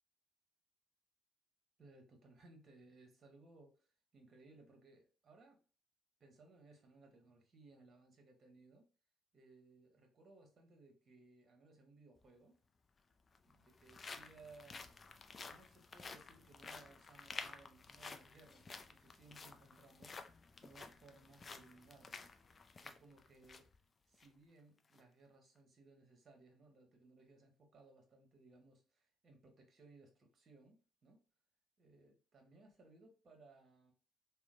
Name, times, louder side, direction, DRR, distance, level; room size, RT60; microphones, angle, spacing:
voice 1, 1.8-5.6 6.2-8.8 9.3-12.6 13.4-14.9 15.4-20.2 20.6-22.3 22.6-23.7 24.1-31.2 31.8-33.9, right 3 dB, 45° right, 1.0 m, -63 dB
sound 1, 12.2-12.3 13.2-23.8 24.1-24.3 24.8-25.0, left 4 dB, 40° left, 0.4 m, -52 dB
2.8 x 2.1 x 2.4 m
hypercardioid pair, 50°, 0 cm